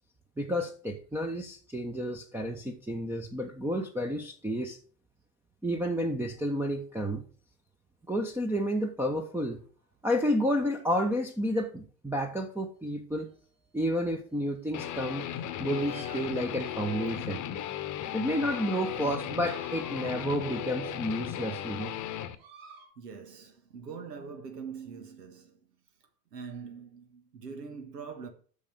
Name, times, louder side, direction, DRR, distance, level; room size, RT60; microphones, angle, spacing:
voice 1, 0.4-4.8 5.6-7.2 8.1-9.6 10.0-13.3 13.7-15.3 15.6-17.4 18.1-21.9, equal, 5° right, 1.0 m, -31 dB
sound 1, 13.3-13.4 14.3-14.4 15.3-15.4 15.7-17.5 18.3-18.4 18.7-21.5 22.3-22.9, right 4 dB, 45° right, 2.6 m, -53 dB
Guitar, 14.7-22.3, left 10 dB, 35° left, 1.1 m, -36 dB
voice 2, 23.0-25.6 26.3-28.3, right 5 dB, 75° right, 1.8 m, -43 dB
8.4 x 6.2 x 6.7 m
figure-of-eight pair, 80°, 49 cm